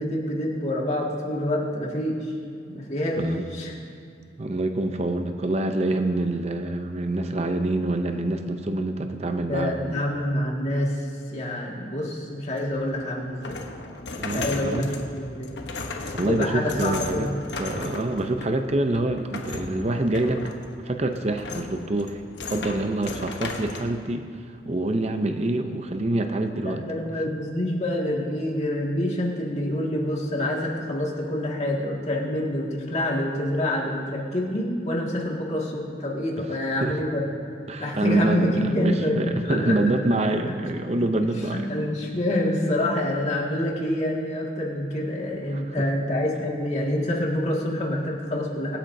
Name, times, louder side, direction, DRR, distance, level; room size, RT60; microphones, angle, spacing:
voice 1, 0.0-2.3 2.7-3.2 3.5-3.8 9.5-11.1 11.3-13.7 14.1-15.6 16.2-17.3 26.6-37.3 37.8-39.8 40.3-40.6 41.0-41.1 41.4-48.8, left 1 dB, 40° left, -3 dB, 2.0 m, -27 dB
voice 2, 3.1-3.5 4.4-10.0 14.2-14.9 16.1-17.3 17.6-20.5 20.8-22.2 22.5-24.3 24.6-26.8 36.4-36.5 36.8-36.9 37.7-41.7 45.5-45.8, right 2 dB, 35° right, 6 dB, 0.6 m, -26 dB
sound 1, 12.6-23.9, left 3 dB, 75° left, 1.0 m, -36 dB
24.5 x 8.7 x 2.7 m, 2.3 s
head